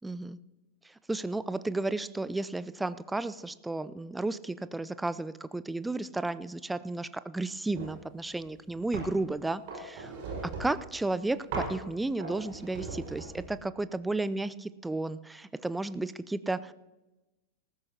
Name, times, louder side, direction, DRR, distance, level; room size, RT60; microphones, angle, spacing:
voice 1, 0.0-0.4 0.8-10.2 10.4-16.7, right 2 dB, 5° right, 15 dB, 0.5 m, -33 dB
sound 1, 7.7-8.0 8.4-9.2 9.7-10.9 11.5-11.8 12.2-13.6, right 4 dB, 45° right, 5.2 m, -38 dB
19.0 x 15.0 x 2.8 m, 1.1 s
figure-of-eight pair, 90°, 0 cm